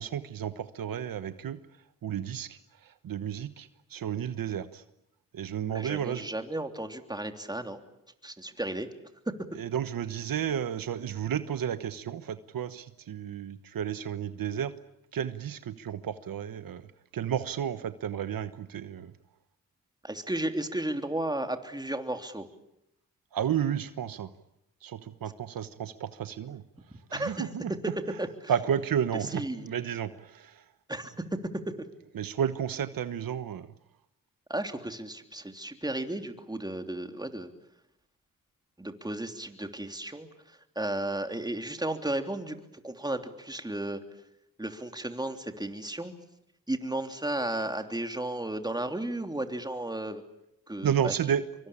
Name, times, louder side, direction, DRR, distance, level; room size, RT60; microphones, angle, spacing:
voice 1, 0.0-1.6 2.0-2.6 3.0-4.8 5.3-6.3 9.5-14.7 15.1-16.8 17.1-19.1 23.3-24.3 24.8-26.6 27.1-28.2 28.5-30.6 32.1-33.7 50.8-51.5, right 9 dB, 75° right, 12 dB, 1.2 m, -32 dB
voice 2, 5.7-7.8 8.2-8.9 9.2-9.3 20.0-22.5 27.1-27.5 28.2-28.5 29.2-29.7 30.9-31.4 31.8-31.9 34.5-37.5 38.8-42.6 42.8-44.0 44.6-46.1 46.7-50.2 50.7-51.1, right 1 dB, 10° right, 6 dB, 3.2 m, -34 dB
25.0 x 24.0 x 8.7 m, 0.82 s
cardioid pair, 65°, 34 cm